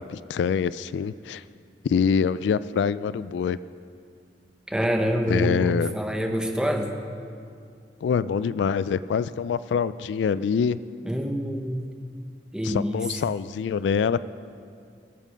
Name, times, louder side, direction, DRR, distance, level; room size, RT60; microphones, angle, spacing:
voice 1, 0.0-1.4 1.8-3.6 5.3-5.9 8.0-10.8 12.6-14.2, left 6 dB, 80° left, 16 dB, 0.3 m, -25 dB
voice 2, 4.7-7.0 11.0-11.8 12.5-13.0, equal, 5° right, 3 dB, 0.9 m, -26 dB
19.0 x 7.6 x 5.1 m, 2.3 s
head